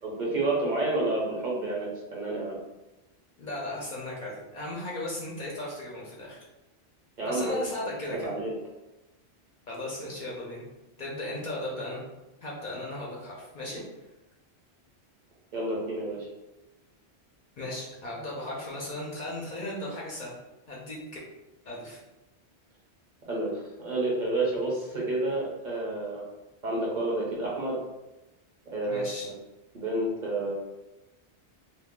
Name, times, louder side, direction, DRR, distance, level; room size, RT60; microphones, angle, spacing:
voice 1, 0.0-2.6 7.2-7.5 7.8-8.5 15.5-16.3 23.3-26.2 26.6-27.8 28.7-29.3 29.7-30.5, right 2 dB, 50° right, -4 dB, 0.8 m, -30 dB
voice 2, 3.4-6.4 7.2-8.3 9.7-10.6 11.0-12.0 12.4-13.8 17.6-20.4 20.7-21.0 21.6-22.0 28.8-29.3, left 1 dB, 50° left, -4 dB, 0.7 m, -36 dB
2.6 x 2.0 x 3.5 m, 1.0 s
omnidirectional pair, 1.1 m